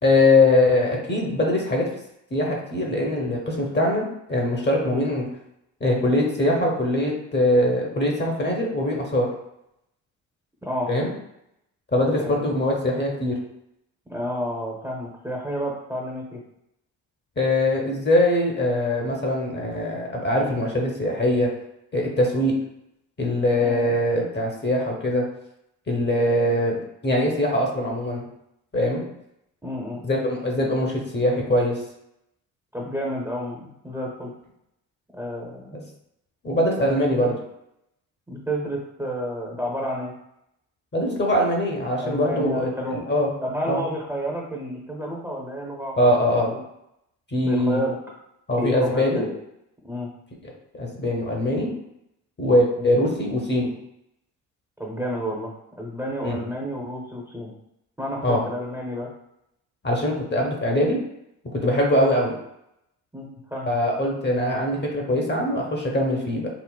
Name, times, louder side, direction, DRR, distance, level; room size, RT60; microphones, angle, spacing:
voice 1, 0.0-1.9 2.3-5.3 5.8-9.3 10.9-11.1 11.9-13.4 17.4-21.5 21.9-22.5 23.2-25.2 25.9-28.2 28.7-29.0 30.0-31.8 36.4-37.3 40.9-43.3 43.7-43.8 46.0-46.5 47.3-47.8 48.5-49.3 50.7-51.7 52.4-53.7 56.2-56.4 58.2-58.4 59.8-61.0 61.6-62.4 63.7-66.5, left 1 dB, 25° left, 0 dB, 0.9 m, -22 dB
voice 2, 14.1-16.4 23.6-23.9 29.6-30.0 32.7-34.3 35.1-35.9 36.8-36.9 37.2-37.3 38.3-40.1 42.0-43.0 43.4-46.6 47.4-48.0 48.6-49.3 49.8-50.1 52.8-52.9 54.8-55.5 55.8-57.5 58.0-59.1 63.1-63.7, equal, 5° right, -2 dB, 0.7 m, -30 dB
3.8 x 2.0 x 2.3 m, 0.80 s
hypercardioid pair, 45°, 42 cm